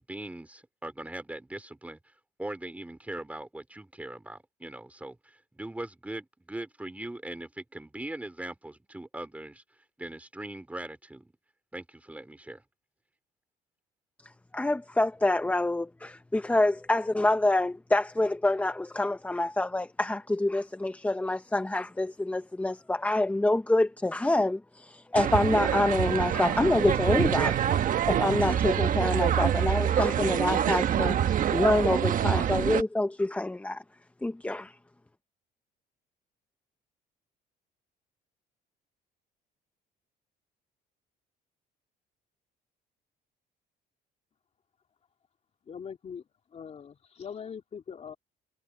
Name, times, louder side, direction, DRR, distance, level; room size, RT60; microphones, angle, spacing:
voice 1, 0.1-2.1 2.4-9.6 10.0-11.3 11.7-12.6, right 1 dB, 10° right, 3.2 m, -40 dB
voice 2, 14.5-27.7 28.0-33.8 34.2-34.7, left 2 dB, 10° left, 0.8 m, -26 dB
sound 1, 25.1-32.8, right 10 dB, 50° right, 1.4 m, -26 dB
voice 3, 45.7-46.2 46.5-48.1, left 7 dB, 40° left, 3.0 m, -41 dB
cardioid pair, 110°, 17 cm